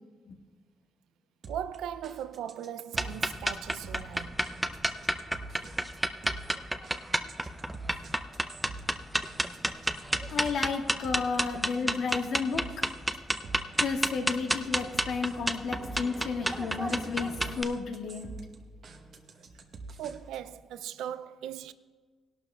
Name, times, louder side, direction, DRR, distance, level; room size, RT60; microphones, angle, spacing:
sound 1, 1.4-20.5, right 3 dB, 55° right, 1.0 m, -47 dB
voice 1, 1.5-4.4 8.7-8.9 20.0-21.7, right 10 dB, 85° right, 0.4 m, -39 dB
sound 2, 2.9-17.6, right 1 dB, 10° right, 0.5 m, -31 dB
voice 2, 10.3-12.8 13.8-18.3, left 4 dB, 70° left, 1.4 m, -32 dB
18.0 x 12.0 x 2.3 m
cardioid pair, 90°, 0 cm